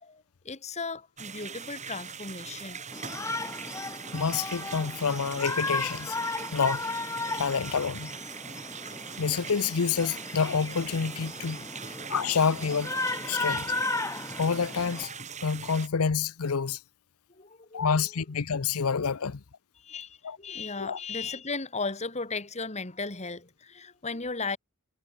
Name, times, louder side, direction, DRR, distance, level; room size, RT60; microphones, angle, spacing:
voice 1, 0.0-2.9 11.7-12.0 13.4-13.7 17.3-18.1 19.8-24.6, left 4 dB, 30° left, 1.9 m, -36 dB
sound 1, 1.2-15.9, right 6 dB, 30° right, 7.0 m, -41 dB
Shout, 2.9-15.0, left 3 dB, 15° left, 1.3 m, -35 dB
voice 2, 4.1-6.2 6.5-6.8 7.3-8.2 9.2-11.7 12.1-12.9 13.3-13.7 14.4-15.2 15.4-16.8 17.7-19.4 20.2-20.4 20.8-21.0, left 6 dB, 80° left, 0.7 m, -28 dB
head